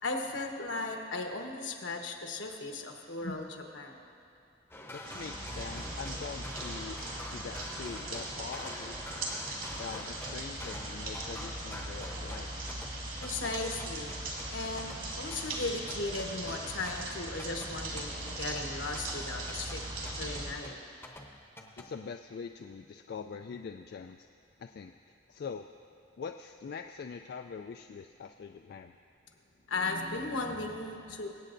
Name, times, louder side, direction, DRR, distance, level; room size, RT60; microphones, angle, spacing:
voice 1, 0.0-4.0 13.2-14.1 14.5-19.8 20.2-20.8 29.7-31.3, left 3 dB, 75° left, 3 dB, 1.1 m, -36 dB
sound 1, 4.7-21.9, left 1 dB, 10° left, 0.8 m, -47 dB
voice 2, 4.9-7.0 7.3-9.1 9.8-12.5 21.8-24.3 24.6-25.7 26.2-29.0, left 5 dB, 55° left, 5 dB, 0.3 m, -43 dB
sound 2, 5.1-20.5, right 1 dB, 50° right, 2.2 m, -39 dB
23.5 x 8.6 x 2.6 m, 2.6 s
head